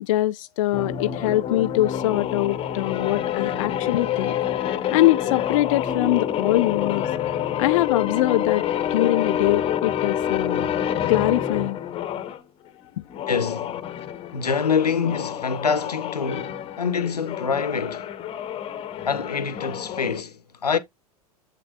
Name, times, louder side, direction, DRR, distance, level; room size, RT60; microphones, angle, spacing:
voice 1, 0.0-4.3 4.6-7.1 7.6-8.6 8.9-10.7 11.1-11.8, left 15 dB, 55° left, 0.4 m, -23 dB
sound 1, 0.7-12.4 13.1-20.2, left 10 dB, 30° left, 0.9 m, -27 dB
voice 2, 13.3-13.8 14.3-18.1 19.0-20.8, left 6 dB, 80° left, 0.7 m, -25 dB
7.5 x 6.3 x 2.3 m
figure-of-eight pair, 90°, 20 cm